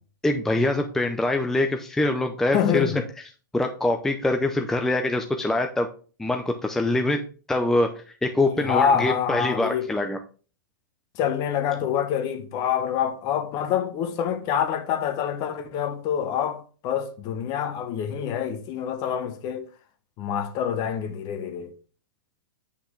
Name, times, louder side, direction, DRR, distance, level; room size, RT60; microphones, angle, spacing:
voice 1, 0.2-3.0 3.5-5.9 6.2-10.2, left 2 dB, 5° left, 0.5 m, -24 dB
voice 2, 2.5-3.0 8.4-9.9 11.1-19.6 20.2-21.7, left 8 dB, 35° left, 1.1 m, -26 dB
8.3 x 5.8 x 3.1 m
hypercardioid pair, 140°, 11 cm